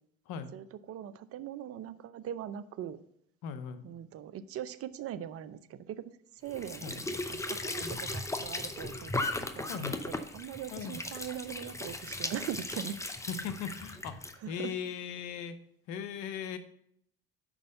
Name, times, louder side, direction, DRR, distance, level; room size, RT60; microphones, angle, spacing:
voice 1, 0.5-3.0 3.8-9.1 9.5-13.0 14.4-14.7, right 10 dB, 50° right, 15 dB, 0.7 m, -41 dB
voice 2, 3.4-3.8 6.8-7.0 7.8-7.9 9.7-10.0 10.7-11.0 13.3-14.2 14.5-15.6 15.9-16.6, left 7 dB, 75° left, 10 dB, 0.9 m, -38 dB
Squeak / Sink (filling or washing) / Trickle dribble, 6.5-14.4, left 2 dB, 10° left, 0.7 m, -37 dB
6.1 x 5.2 x 6.6 m, 0.70 s
supercardioid pair, 75°, 30 cm